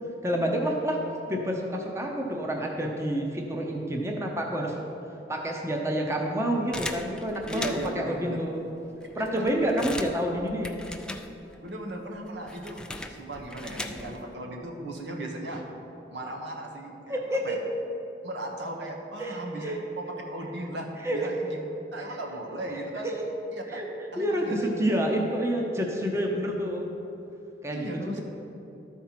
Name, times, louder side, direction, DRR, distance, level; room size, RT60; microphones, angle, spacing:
voice 1, 0.2-1.0 1.3-4.8 5.3-7.7 7.9-8.7 9.2-10.8 17.1-17.6 19.2-19.8 21.0-21.3 22.0-22.2 23.0-23.1 23.7-23.9 24.2-26.9 27.6-28.2, equal, 15° right, 1 dB, 0.7 m, -28 dB
sound 1, 6.7-8.1 8.7-8.8 9.0-11.7 11.9-14.3, left 1 dB, 5° left, 0.3 m, -39 dB
voice 2, 7.5-8.4 9.2-9.4 11.6-15.7 16.1-17.6 18.2-21.6 21.9-23.1 23.5-23.8 24.1-24.7 27.7-28.2, right 1 dB, 85° right, 1 dB, 1.3 m, -37 dB
12.5 x 4.5 x 5.8 m, 3.0 s
head